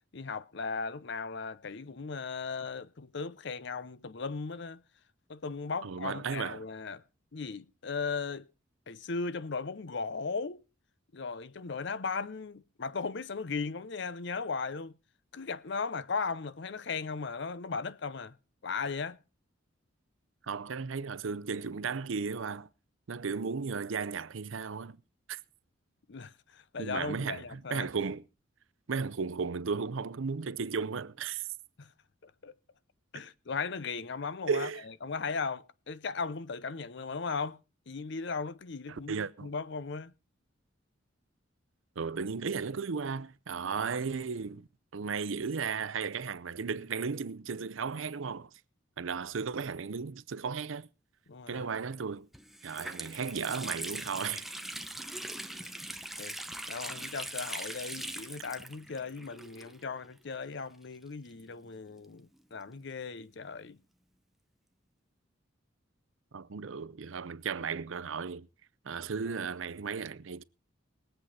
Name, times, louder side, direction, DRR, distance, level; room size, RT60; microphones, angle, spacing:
voice 1, 0.1-4.8 5.3-7.0 7.3-8.5 8.9-10.6 11.1-14.9 15.3-18.4 18.6-19.2 26.1-27.9 31.8-31.9 32.2-32.6 33.1-37.6 37.9-40.1 51.3-51.7 55.7-55.8 56.2-56.4 56.7-63.8 69.3-69.4, left 4 dB, 60° left, 0.7 m, -37 dB
voice 2, 5.8-6.6 20.5-22.7 23.1-25.0 25.3-25.4 26.8-28.2 28.9-31.5 34.5-34.8 38.9-39.5 42.0-44.7 44.9-48.5 49.0-50.9 51.5-52.3 52.6-54.5 66.3-68.5 68.8-70.4, right 5 dB, 75° right, 0.6 m, -35 dB
Water tap faucet, 51.9-52.0 52.3-60.1 60.3-60.4 61.2-62.8, right 1 dB, ahead, 0.8 m, -41 dB
21.0 x 8.0 x 4.2 m
head